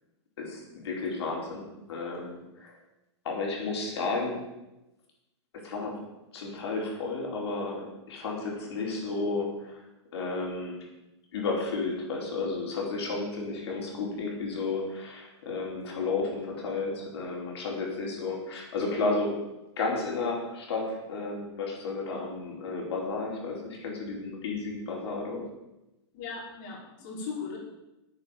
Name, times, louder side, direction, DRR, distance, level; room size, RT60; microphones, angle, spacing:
voice 1, 0.4-2.7 3.2-4.4 5.5-6.0 6.3-9.8 10.1-10.8 11.3-19.3 19.8-25.4, left 3 dB, 65° left, -1 dB, 4.9 m, -32 dB
voice 2, 26.1-27.6, left 5 dB, 40° left, -3 dB, 5.0 m, -38 dB
10.0 x 8.8 x 7.5 m, 0.97 s
hypercardioid pair, 160°, 15 cm